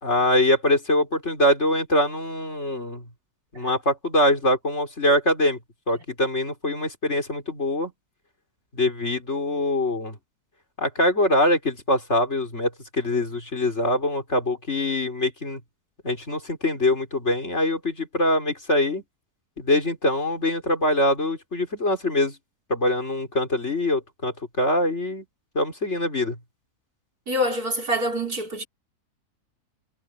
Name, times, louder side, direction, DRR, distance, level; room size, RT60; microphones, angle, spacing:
voice 1, 0.0-3.0 3.5-5.6 5.9-7.9 8.7-10.2 10.8-15.6 16.0-19.0 19.6-22.3 22.7-25.2 25.5-26.3, left 1 dB, 45° left, 4.6 m, -23 dB
voice 2, 27.3-28.6, equal, 65° right, 6.0 m, -26 dB
omnidirectional pair, 1.7 m